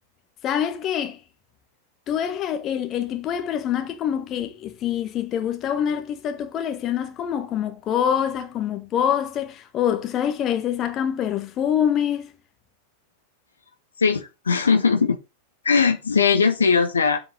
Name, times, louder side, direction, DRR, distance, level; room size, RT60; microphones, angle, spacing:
voice 1, 0.4-1.2 2.1-12.3, left 9 dB, 30° left, 1.5 m, -25 dB
voice 2, 14.0-15.2 15.6-17.2, left 5 dB, 70° left, 0.9 m, -19 dB
7.6 x 5.2 x 5.4 m
figure-of-eight pair, 90°, 0 cm